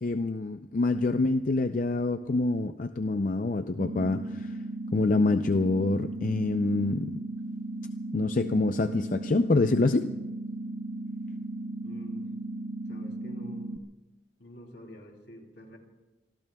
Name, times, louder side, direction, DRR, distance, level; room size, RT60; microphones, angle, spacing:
voice 1, 0.0-4.5 4.9-7.2 8.1-10.1, left 3 dB, 45° left, 8 dB, 0.5 m, -26 dB
sound 1, 3.8-13.8, right 2 dB, 45° right, 0.6 m, -36 dB
voice 2, 11.8-12.3 12.9-13.8 14.4-15.8, equal, 75° left, 2 dB, 3.1 m, -48 dB
26.5 x 21.0 x 2.3 m, 1.1 s
head